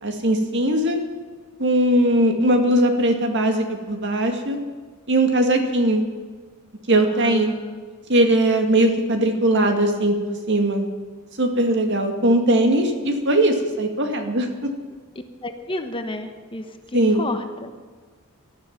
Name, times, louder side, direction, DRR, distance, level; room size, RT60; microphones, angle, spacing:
voice 1, 0.0-1.0 1.6-4.6 5.1-6.0 6.9-7.5 8.1-10.2 10.5-10.9 11.4-14.7 16.9-17.3, right 1 dB, 55° right, 5 dB, 2.0 m, -19 dB
voice 2, 2.0-2.4 7.1-7.8 15.4-17.7, left 1 dB, 25° left, 7 dB, 1.1 m, -32 dB
19.0 x 13.0 x 5.9 m, 1.5 s
head